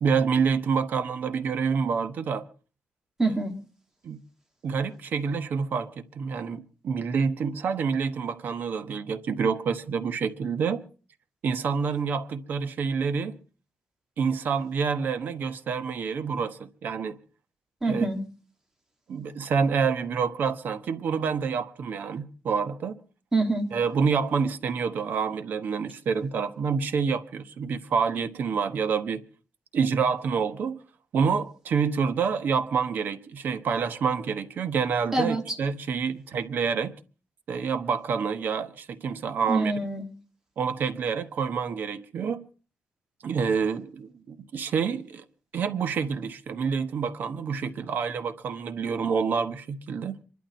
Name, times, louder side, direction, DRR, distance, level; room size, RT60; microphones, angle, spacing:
voice 1, 0.0-2.5 4.0-4.2 4.6-10.8 11.4-13.3 14.2-17.2 17.9-18.1 19.1-23.0 23.7-29.2 29.7-30.8 31.1-36.9 37.5-39.7 40.6-42.4 43.2-45.2 45.5-50.2, right 6 dB, 55° right, 1.1 m, -27 dB
voice 2, 3.2-3.5 17.8-18.2 23.3-23.7 35.1-35.6 39.5-40.1, right 2 dB, 10° right, 2.0 m, -25 dB
26.0 x 12.0 x 4.4 m
wide cardioid pair, 180°, 4 cm